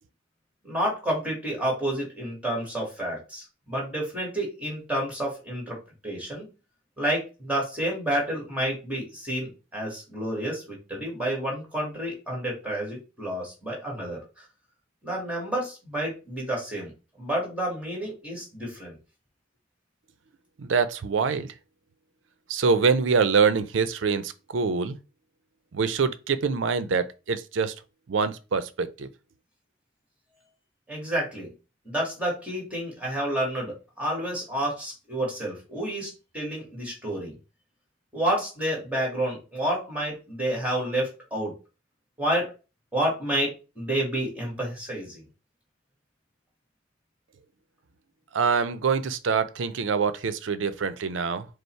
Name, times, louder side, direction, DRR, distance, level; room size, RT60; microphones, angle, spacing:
voice 1, 0.6-5.8 6.0-6.5 7.0-14.4 15.0-16.9 17.2-19.0 30.9-31.5 31.8-37.4 38.1-41.5 42.2-42.5 42.9-45.2, right 1 dB, 5° right, 1.7 m, -29 dB
voice 2, 20.6-21.5 22.5-25.0 25.7-27.7 28.1-29.1 48.3-51.5, right 5 dB, 75° right, 0.5 m, -25 dB
5.3 x 2.0 x 4.4 m
head